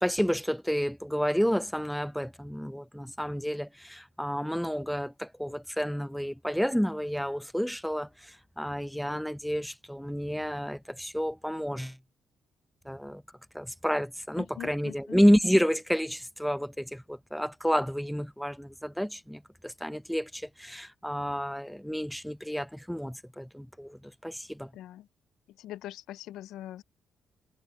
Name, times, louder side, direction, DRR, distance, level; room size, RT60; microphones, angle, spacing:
voice 1, 0.0-12.0 12.9-13.2 13.5-24.7, equal, ahead, 0.7 m, -30 dB
voice 2, 14.4-15.2 24.7-25.1 25.5-26.8, left 13 dB, 85° left, 0.4 m, -42 dB
cardioid pair, 90°, 0 cm